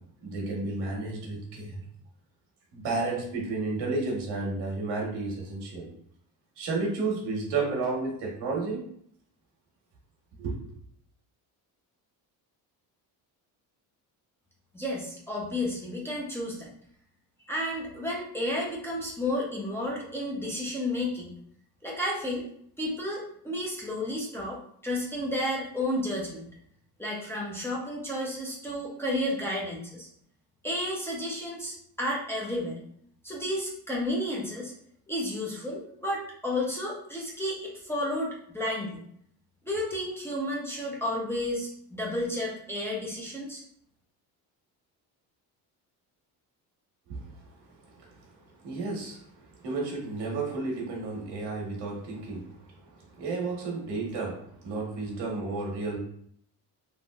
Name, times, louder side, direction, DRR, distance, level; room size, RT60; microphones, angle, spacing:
voice 1, 0.2-1.7 2.7-5.9 6.6-8.8 10.4-10.6 47.1-47.2 48.0-48.1 48.6-49.2 49.6-52.4 53.2-56.0, right 3 dB, 90° right, -1 dB, 1.2 m, -32 dB
voice 2, 14.7-16.7 17.4-21.3 21.8-22.4 22.8-26.4 27.0-30.1 30.6-32.8 33.2-34.7 35.1-39.0 39.7-43.6, left 1 dB, 5° left, -5 dB, 0.5 m, -32 dB
3.4 x 2.6 x 2.3 m, 0.68 s
cardioid pair, 145°, 39 cm